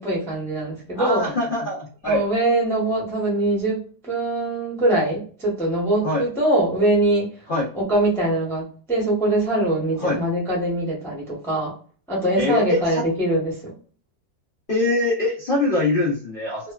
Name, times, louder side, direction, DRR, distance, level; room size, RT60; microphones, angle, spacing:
voice 1, 0.0-1.3 2.0-7.3 7.7-11.7 12.1-13.7, right 1 dB, ahead, -5 dB, 0.6 m, -22 dB
voice 2, 0.9-2.2 6.0-6.2 7.5-7.7 10.0-10.2 12.3-13.0 14.7-16.7, left 2 dB, 85° left, -3 dB, 0.4 m, -23 dB
3.0 x 2.1 x 2.2 m, 0.42 s
omnidirectional pair, 1.9 m